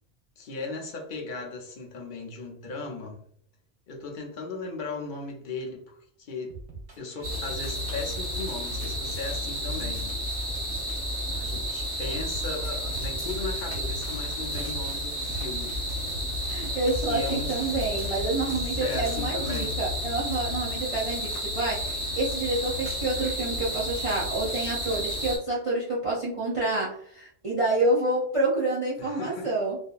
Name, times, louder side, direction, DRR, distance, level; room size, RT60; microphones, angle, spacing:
voice 1, 0.4-3.2 3.9-6.5 7.0-10.1 11.3-15.8 17.0-17.8 18.5-19.8 29.0-29.5, left 3 dB, 55° left, 0.7 m, -37 dB
sound 1, 6.5-19.7, right 2 dB, 80° right, 1.1 m, -42 dB
sound 2, 7.2-25.4, equal, 5° left, 1.4 m, -31 dB
voice 2, 16.5-29.8, right 2 dB, 45° right, 0.4 m, -28 dB
2.7 x 2.4 x 2.3 m
omnidirectional pair, 1.2 m